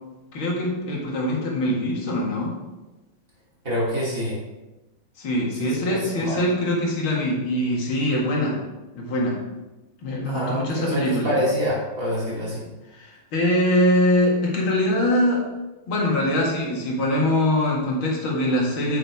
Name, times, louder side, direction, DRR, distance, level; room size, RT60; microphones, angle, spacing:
voice 1, 0.3-2.5 5.2-8.6 8.9-9.4 10.0-11.3 13.0-15.4 15.9-19.0, left 1 dB, 80° left, -2 dB, 2.7 m, -23 dB
voice 2, 3.6-4.4 5.6-6.4 10.2-12.7, equal, 40° right, -6 dB, 3.4 m, -26 dB
8.9 x 8.6 x 3.6 m, 1.1 s
omnidirectional pair, 2.2 m